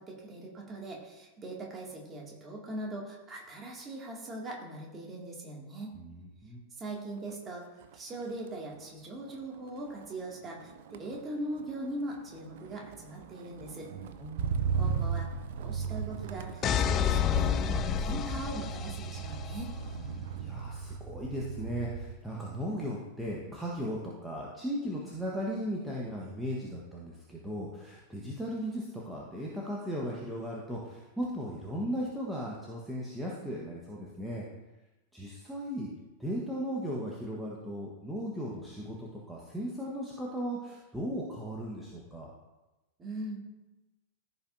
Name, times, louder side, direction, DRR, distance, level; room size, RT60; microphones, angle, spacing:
voice 1, 0.0-6.0 6.8-13.9 14.7-15.3 15.5-19.7 43.0-43.4, right 1 dB, 20° right, -2 dB, 2.3 m, -41 dB
voice 2, 5.9-6.6 14.2-14.8 20.4-34.4 35.1-35.9 36.2-42.3, equal, 5° right, -4 dB, 1.3 m, -37 dB
Motor vehicle (road), 7.1-7.5 7.8-22.3 22.6-23.1, right 6 dB, 55° right, 0.6 m, -38 dB
sound 1, 16.6-19.5, left 7 dB, 30° left, 0.5 m, -29 dB
14.5 x 5.5 x 2.7 m, 1.1 s
figure-of-eight pair, 90°, 0 cm